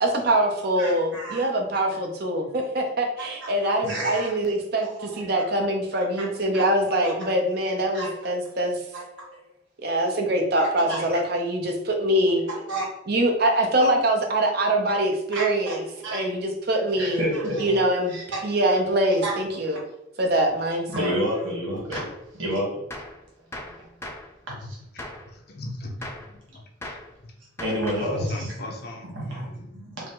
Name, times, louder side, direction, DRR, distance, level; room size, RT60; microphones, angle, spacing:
voice 1, 0.0-4.9 5.1-8.8 9.8-12.4 13.1-15.8 16.1-17.2 17.6-18.1 18.4-19.8 20.2-21.1, right 1 dB, 55° right, 2 dB, 0.7 m, -23 dB
voice 2, 0.8-1.5 1.9-2.0 3.2-4.3 4.8-5.3 6.2-6.7 7.0-7.2 7.9-8.2 8.9-9.4 10.7-11.2 12.5-12.8 14.9-15.0 15.3-16.2 17.0-18.4 19.2-19.3 20.9-22.1 22.3-22.8 24.7-24.8 27.6-28.2 29.1-30.0, right 1 dB, 90° right, -4 dB, 1.4 m, -31 dB
Gunshot gunfire, 21.9-22.2 22.9-23.2 23.5-24.3 25.0-25.3 26.0-26.3 26.8-27.1 27.6-28.1, left 1 dB, 15° left, 0.5 m, -38 dB
voice 3, 25.2-26.0 26.5-26.6 27.2-27.3 27.7-29.7, left 1 dB, 55° left, 2 dB, 0.6 m, -38 dB
4.8 x 2.1 x 3.7 m, 0.86 s
head